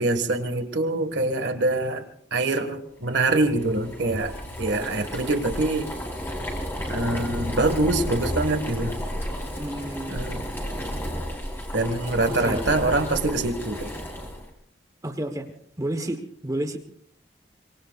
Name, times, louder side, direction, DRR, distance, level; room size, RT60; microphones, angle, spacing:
voice 1, 0.0-5.9 6.9-9.0 10.1-10.5 11.7-13.9, right 2 dB, 75° right, 9 dB, 1.7 m, -25 dB
Boiling, 3.2-14.5, equal, 15° left, 3.9 m, -32 dB
voice 2, 9.6-10.1 12.3-12.8 15.0-15.5 15.8-16.8, right 1 dB, 20° right, 6 dB, 1.1 m, -30 dB
25.0 x 23.0 x 2.4 m, 0.67 s
head